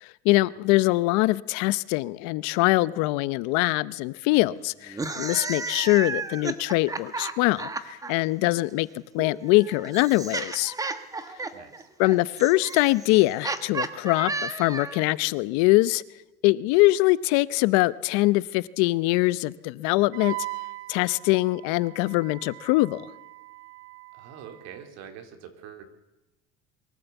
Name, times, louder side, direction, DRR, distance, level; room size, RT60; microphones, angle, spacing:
voice 1, 0.0-8.9 9.1-10.7 12.0-16.0 16.4-20.4 20.9-23.1, left 20 dB, 70° left, 0.8 m, -23 dB
sound 1, 4.9-8.1 9.2-15.1, right 3 dB, 10° right, 1.3 m, -33 dB
voice 2, 11.5-11.9 24.1-25.8, right 8 dB, 60° right, 3.7 m, -45 dB
Wind instrument woodwind instrument, 20.1-24.8, right 21 dB, 85° right, 0.8 m, -40 dB
23.5 x 15.5 x 8.2 m
cardioid pair, 150°, 30 cm